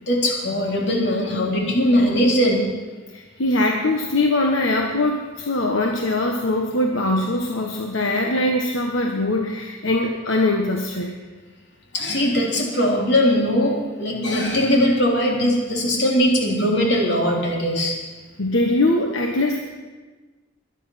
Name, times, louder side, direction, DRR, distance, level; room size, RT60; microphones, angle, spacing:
voice 1, 0.1-2.6 11.9-18.0, equal, 60° left, -1 dB, 3.6 m, -20 dB
voice 2, 3.1-11.2 18.4-19.6, left 2 dB, 85° left, 2 dB, 1.4 m, -22 dB
22.5 x 10.0 x 5.8 m, 1.3 s
head